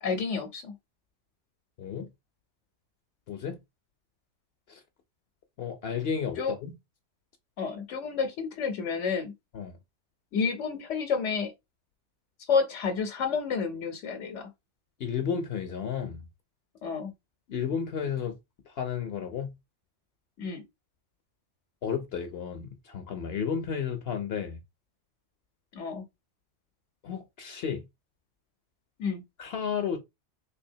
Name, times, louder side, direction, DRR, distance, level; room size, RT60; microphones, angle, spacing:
voice 1, 0.0-0.7 6.4-6.5 7.6-9.3 10.3-11.5 12.5-14.5 16.8-17.1 20.4-20.6 25.7-26.0 29.0-29.2, left 5 dB, 85° left, 1.0 m, -30 dB
voice 2, 1.8-2.1 3.3-3.6 4.7-4.8 5.6-6.7 9.5-9.8 15.0-16.3 17.5-18.4 18.7-19.5 21.8-24.6 27.0-27.8 29.4-30.0, left 7 dB, 65° left, 0.7 m, -32 dB
3.4 x 3.4 x 2.6 m
omnidirectional pair, 1.2 m